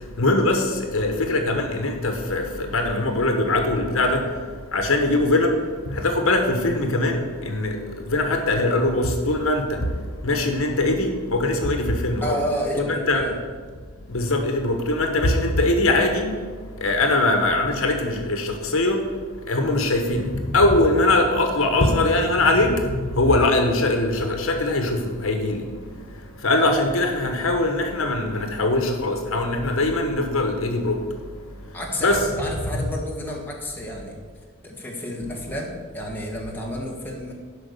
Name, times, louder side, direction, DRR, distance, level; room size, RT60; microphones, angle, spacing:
voice 1, 0.2-0.6 0.9-4.2 4.7-5.6 5.9-7.7 8.1-9.6 10.2-12.4 12.9-13.2 14.1-16.3 16.8-19.0 19.5-22.7 23.0-25.6 26.4-30.9 32.0-32.2, left 2 dB, 70° left, 4 dB, 1.3 m, -21 dB
voice 2, 12.2-13.4 31.7-34.2 34.6-37.3, equal, 10° left, -2 dB, 1.4 m, -30 dB
11.0 x 5.5 x 6.7 m, 1.5 s
head